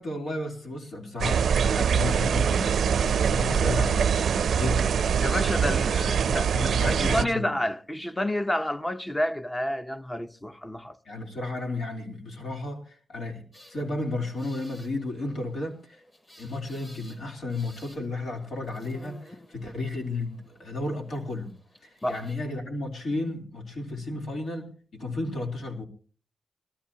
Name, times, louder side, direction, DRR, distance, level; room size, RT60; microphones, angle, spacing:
voice 1, 0.0-2.7 3.0-5.0 6.4-7.5 11.0-16.0 16.4-21.5 21.8-25.8, left 2 dB, 75° left, 3.2 m, -33 dB
sound 1, 1.2-7.2, right 7 dB, 85° right, 0.5 m, -23 dB
voice 2, 5.2-11.0 22.0-22.3, left 1 dB, 15° left, 0.8 m, -29 dB
sound 2, 13.5-22.4, left 1 dB, 35° left, 5.4 m, -54 dB
22.5 x 13.5 x 2.8 m
cardioid pair, 90°, 0 cm